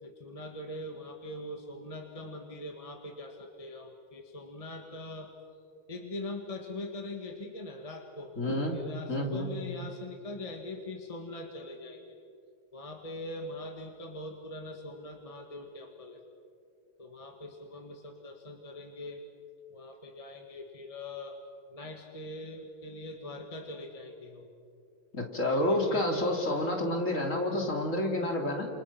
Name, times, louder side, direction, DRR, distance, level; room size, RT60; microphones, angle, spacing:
voice 1, 0.0-5.3 5.9-12.2 12.7-16.2 17.0-19.2 19.7-21.4 21.7-24.5 25.4-26.7, left 2 dB, 15° left, 2 dB, 1.7 m, -42 dB
voice 2, 8.4-8.7 9.1-9.5 25.1-28.7, left 1 dB, 35° left, 2 dB, 3.2 m, -29 dB
30.0 x 28.0 x 6.0 m, 2.4 s
omnidirectional pair, 2.3 m